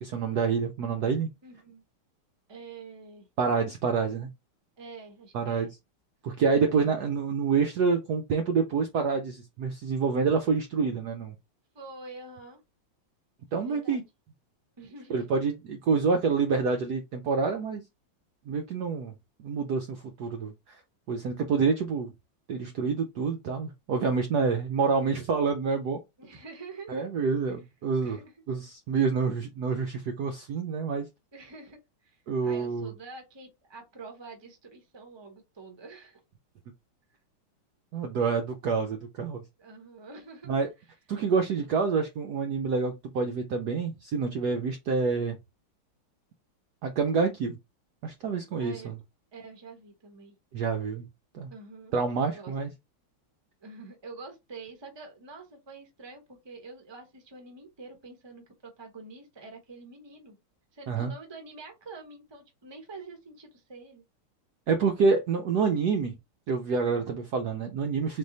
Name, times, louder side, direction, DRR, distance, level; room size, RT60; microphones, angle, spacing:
voice 1, 0.0-1.3 3.4-4.3 5.3-5.7 6.2-11.3 13.5-14.0 15.1-17.8 18.5-19.1 19.4-20.8 21.1-22.1 22.5-26.0 26.9-28.2 28.5-31.1 32.3-32.9 37.9-39.4 40.5-40.7 41.1-45.4 46.8-47.5 48.0-48.9 50.5-51.0 51.3-51.5 51.9-52.7 60.9-61.1 64.7-66.1 66.5-68.2, right 5 dB, 70° right, 1.0 m, -27 dB
voice 2, 1.4-1.8 2.5-3.3 4.8-5.7 6.4-7.0 11.7-12.6 13.5-14.0 14.8-15.2 26.2-27.0 28.0-28.3 31.3-36.2 39.6-40.5 48.6-48.9 49.3-50.3 51.5-52.5 53.6-60.4 60.7-64.0, right 3 dB, 20° right, 0.7 m, -46 dB
3.7 x 3.2 x 4.0 m
omnidirectional pair, 2.3 m